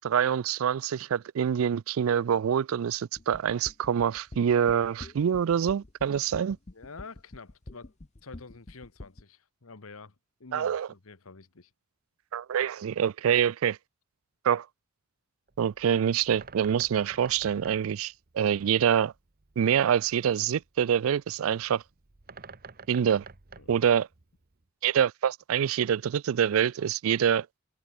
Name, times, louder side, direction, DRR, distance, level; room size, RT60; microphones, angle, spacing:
voice 1, 0.0-6.6 10.5-10.9 12.3-13.8 14.4-14.7 15.6-19.1 19.6-21.8 22.9-23.2 23.7-24.1 24.8-27.5, right 8 dB, 75° right, 0.4 m, -26 dB
sound 1, 3.2-9.2, left 2 dB, 35° left, 0.9 m, -46 dB
voice 2, 6.7-7.9 8.2-10.1 10.4-11.7 23.6-23.8, left 4 dB, 85° left, 1.3 m, -48 dB
Bird, 15.5-24.6, right 5 dB, 45° right, 1.2 m, -51 dB
head